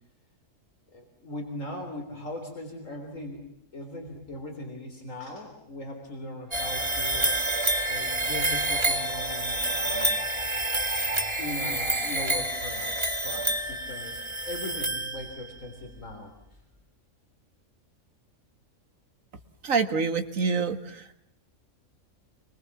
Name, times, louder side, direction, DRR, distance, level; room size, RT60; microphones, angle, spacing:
voice 1, 0.9-3.4 3.7-7.3 7.9-10.2 11.4-16.3, left 1 dB, 70° left, 2 dB, 4.0 m, -39 dB
sound 1, 6.5-15.6, right 1 dB, 20° right, 2.3 m, -28 dB
voice 2, 19.6-21.0, right 5 dB, 75° right, 8 dB, 2.1 m, -26 dB
26.5 x 23.0 x 7.2 m, 0.71 s
omnidirectional pair, 1.4 m